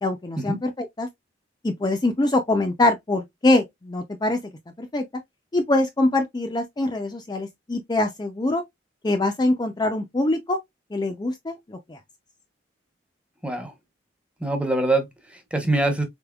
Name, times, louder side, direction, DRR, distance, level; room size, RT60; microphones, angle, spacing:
voice 1, 0.0-1.1 1.6-4.4 4.8-5.0 5.5-8.6 9.0-10.6 10.9-12.0, left 2 dB, 20° left, 0.4 m, -24 dB
voice 2, 13.4-13.7 14.4-16.0, right 2 dB, 5° right, 0.8 m, -24 dB
4.3 x 3.4 x 2.3 m
head